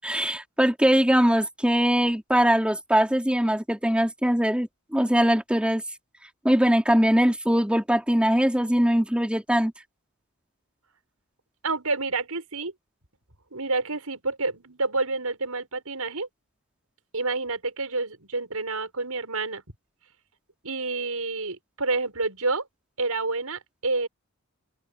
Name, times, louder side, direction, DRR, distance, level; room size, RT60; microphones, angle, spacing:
voice 1, 0.0-5.8 6.4-9.7, equal, 5° right, 3.7 m, -22 dB
voice 2, 11.6-12.7 13.5-16.3 17.1-19.6 20.6-22.7 23.0-24.1, right 3 dB, 90° right, 6.0 m, -28 dB
head